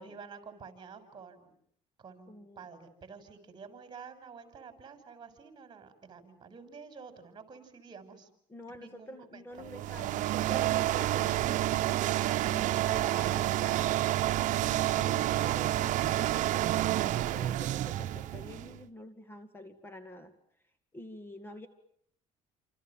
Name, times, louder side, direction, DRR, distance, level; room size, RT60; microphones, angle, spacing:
voice 1, 0.0-1.4 2.0-8.3 8.8-9.7, right 5 dB, 30° right, 9 dB, 5.9 m, -49 dB
voice 2, 2.3-2.6 8.5-12.0 12.4-14.0 14.4-20.3 20.9-21.7, left 1 dB, 15° left, 9 dB, 2.4 m, -47 dB
sound 1, 9.6-18.8, right 14 dB, 65° right, 1.1 m, -29 dB
28.5 x 27.0 x 7.4 m, 0.67 s
cardioid pair, 120°, 14 cm